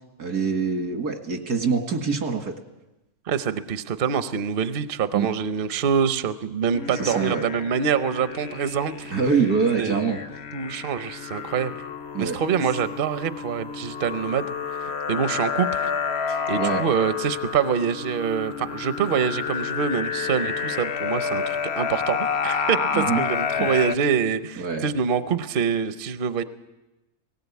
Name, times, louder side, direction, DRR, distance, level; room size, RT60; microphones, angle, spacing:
voice 1, 0.2-2.5 5.1-5.3 7.0-7.4 9.1-10.2 12.1-12.4 16.3-16.9 22.9-23.3 23.6-23.7 24.6-24.8, right 5 dB, 85° right, 5 dB, 2.3 m, -24 dB
voice 2, 3.3-9.1 9.8-10.0 10.5-11.8 12.2-14.5 14.8-15.9 16.5-26.4, right 7 dB, 45° right, 11 dB, 0.8 m, -25 dB
sound 1, 6.7-24.0, left 6 dB, 50° left, 1.0 m, -30 dB
18.0 x 18.0 x 8.3 m, 1.0 s
omnidirectional pair, 1.6 m